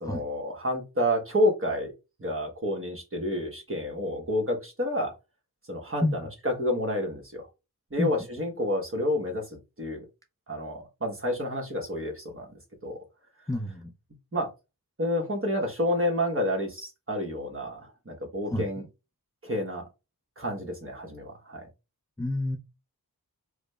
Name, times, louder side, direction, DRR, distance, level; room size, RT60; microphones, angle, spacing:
voice 1, 0.0-1.9 2.2-5.1 5.7-7.5 7.9-9.4 9.8-10.0 10.5-12.5 12.8-13.0 14.3-14.5 15.0-18.8 19.4-19.8 20.4-21.7, left 1 dB, 35° right, 2 dB, 1.2 m, -29 dB
voice 2, 13.5-13.9 18.5-18.6 22.2-22.6, left 1 dB, 10° left, 3 dB, 0.5 m, -28 dB
4.8 x 2.1 x 2.3 m, 0.27 s
wide cardioid pair, 45°, 38 cm